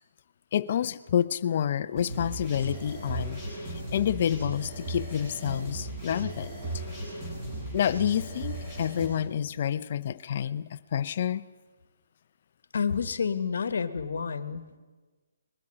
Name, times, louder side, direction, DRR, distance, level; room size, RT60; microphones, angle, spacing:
voice 1, 0.5-6.5 7.7-11.4, left 9 dB, 40° left, 0.7 m, -29 dB
sound 1, 2.0-9.1, right 1 dB, 15° right, 7.5 m, -36 dB
voice 2, 12.7-14.8, left 6 dB, 65° left, 1.3 m, -29 dB
21.0 x 13.0 x 9.9 m
hypercardioid pair, 165°, 0 cm